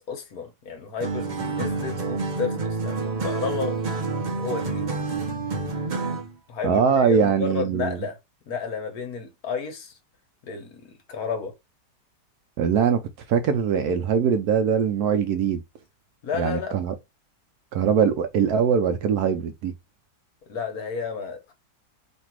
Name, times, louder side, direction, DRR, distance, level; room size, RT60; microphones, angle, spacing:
voice 1, 0.0-3.8 4.0-4.9 6.5-8.2 8.5-10.0 10.4-11.5 16.2-16.8 20.5-21.5, left 5 dB, 60° left, 1.4 m, -32 dB
sound 1, 1.0-6.3, right 3 dB, 55° right, 0.5 m, -28 dB
voice 2, 6.6-8.0 12.6-13.0 13.3-15.6 16.4-16.9 17.7-19.7, right 7 dB, 70° right, 1.0 m, -22 dB
3.2 x 2.6 x 4.4 m
omnidirectional pair, 1.9 m